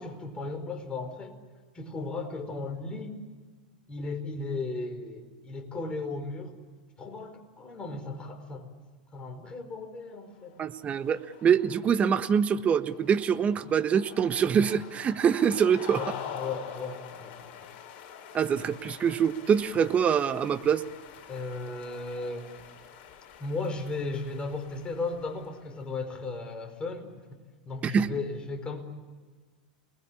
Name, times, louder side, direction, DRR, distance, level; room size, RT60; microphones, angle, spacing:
voice 1, 0.0-1.4 1.7-3.2 3.9-6.5 7.0-8.7 9.1-10.6 15.9-17.7 21.3-22.5 23.4-27.4 27.6-28.8, left 3 dB, 20° left, 4 dB, 5.0 m, -36 dB
sound 1, 10.4-26.1, left 8 dB, 45° left, 5.8 m, -46 dB
voice 2, 10.6-16.0 18.3-20.8 27.8-28.1, right 7 dB, 30° right, 11 dB, 1.4 m, -25 dB
29.0 x 20.5 x 8.6 m, 1.4 s
hypercardioid pair, 95°, 5 cm